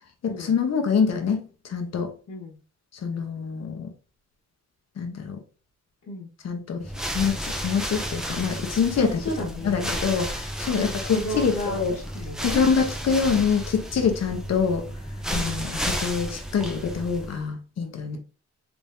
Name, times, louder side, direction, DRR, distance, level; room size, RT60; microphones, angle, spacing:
voice 1, 0.2-2.1 3.0-3.9 5.0-5.4 6.4-12.0 12.4-14.9 15.3-18.2, left 6 dB, 60° left, 0.9 m, -25 dB
voice 2, 2.3-2.6 6.0-6.3 9.0-9.9 10.7-12.6 15.3-15.6, left 1 dB, 85° left, 1.3 m, -33 dB
sound 1, 6.8-17.4, equal, ahead, 0.5 m, -32 dB
3.6 x 3.5 x 2.6 m
wide cardioid pair, 135°, 29 cm